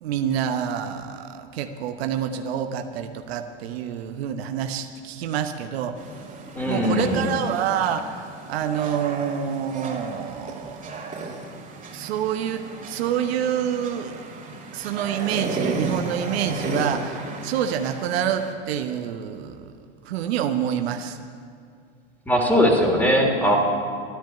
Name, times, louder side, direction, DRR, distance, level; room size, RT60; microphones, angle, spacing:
voice 1, 0.0-6.0 6.7-10.8 11.9-14.1 14.7-19.7 20.0-21.2, right 9 dB, 80° right, 7 dB, 1.1 m, -27 dB
sound 1, 6.0-18.5, right 3 dB, 25° right, 2.7 m, -34 dB
voice 2, 6.5-7.3 22.3-23.6, equal, 5° left, 1 dB, 3.0 m, -20 dB
12.5 x 10.5 x 9.2 m, 2.3 s
hypercardioid pair, 105°, 31 cm